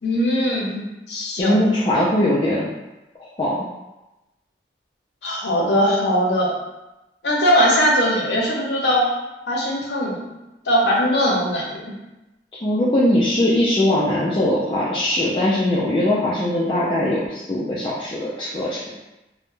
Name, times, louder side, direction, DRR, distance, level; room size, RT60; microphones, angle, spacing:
voice 1, 0.0-1.7 5.2-6.5 7.2-9.1 9.5-10.2 10.6-11.9, equal, 75° left, -2 dB, 0.6 m, -20 dB
voice 2, 1.4-2.7 3.2-3.7 12.6-18.8, left 1 dB, 30° left, -7 dB, 0.3 m, -20 dB
2.2 x 2.0 x 3.0 m, 1.0 s
head